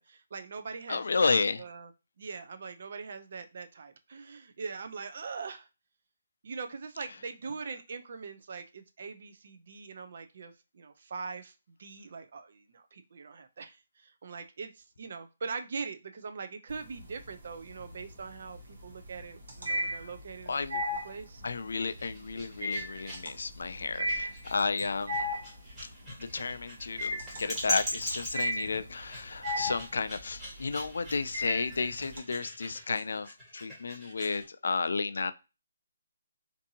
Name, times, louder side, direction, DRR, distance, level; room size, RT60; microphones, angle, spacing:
voice 1, 0.0-1.9 2.2-5.7 6.4-21.4, right 5 dB, 55° right, 0.4 m, -42 dB
voice 2, 0.9-1.6 19.9-20.0 20.5-20.8 21.4-25.2 26.2-35.3, left 4 dB, 75° left, 0.3 m, -32 dB
sound 1, 16.7-17.3 17.7-32.2, left 1 dB, 75° right, 1.3 m, -35 dB
sound 2, 21.8-34.5, equal, 10° right, 1.4 m, -41 dB
2.6 x 2.5 x 2.7 m
hypercardioid pair, 165°, 0 cm